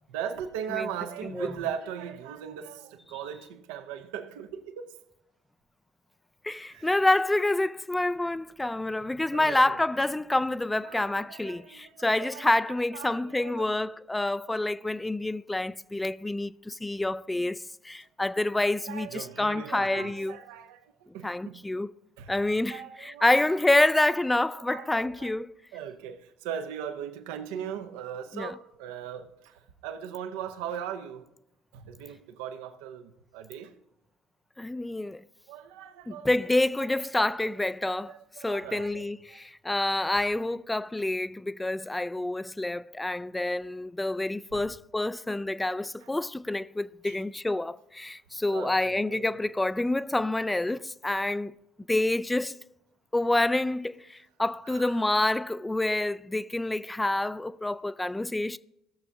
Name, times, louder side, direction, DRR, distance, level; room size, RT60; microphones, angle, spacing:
voice 1, 0.1-5.0 6.7-7.0 9.3-9.8 10.8-13.7 18.9-21.7 22.2-22.4 22.7-24.2 24.7-25.4 25.7-31.3 31.7-33.8 35.5-36.3 36.8-36.9 37.3-37.4 38.0-39.4 44.5-44.7 46.0-46.2 47.0-47.2 48.5-49.4 54.6-55.0, right 8 dB, 75° right, 0.7 m, -39 dB
voice 2, 1.2-1.7 3.1-3.2 6.4-20.4 21.2-21.9 22.3-25.5 28.3-28.6 34.6-35.2 36.1-38.1 38.4-51.5 51.9-52.6 53.1-58.6, left 2 dB, 10° left, 0.3 m, -28 dB
16.5 x 6.8 x 3.6 m
hypercardioid pair, 60°, 0 cm